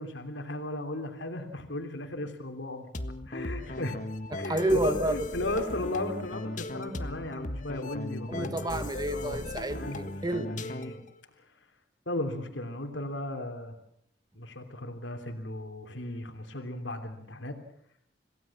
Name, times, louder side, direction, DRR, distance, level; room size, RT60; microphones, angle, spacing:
voice 1, 0.0-2.9 3.3-4.0 4.4-8.8 9.1-9.4 9.7-10.0 10.4-11.0 11.4-11.5 12.0-13.7 14.3-17.5, left 1 dB, 90° left, 5 dB, 3.2 m, -36 dB
sound 1, 2.9-11.1, left 1 dB, 45° left, 1.6 m, -37 dB
voice 2, 4.3-5.5 8.3-10.5, right 1 dB, 20° right, 9 dB, 1.8 m, -30 dB
27.0 x 17.0 x 7.3 m, 0.71 s
head